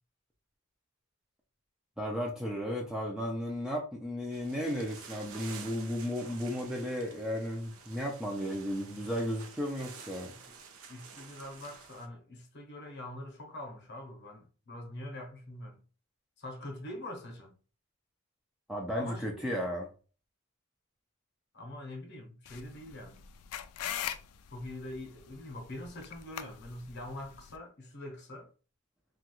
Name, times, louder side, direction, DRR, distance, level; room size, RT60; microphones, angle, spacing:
voice 1, 2.0-10.3 18.7-19.9, equal, 5° right, 0.4 m, -34 dB
sound 1, 4.3-12.1, right 5 dB, 70° right, 0.5 m, -50 dB
voice 2, 10.2-10.6 10.9-15.8 16.4-17.5 19.0-19.3 21.5-23.3 24.5-28.5, left 1 dB, 50° left, 0.8 m, -44 dB
sound 2, 22.5-27.6, left 10 dB, 90° left, 0.3 m, -42 dB
2.9 x 2.4 x 2.9 m
head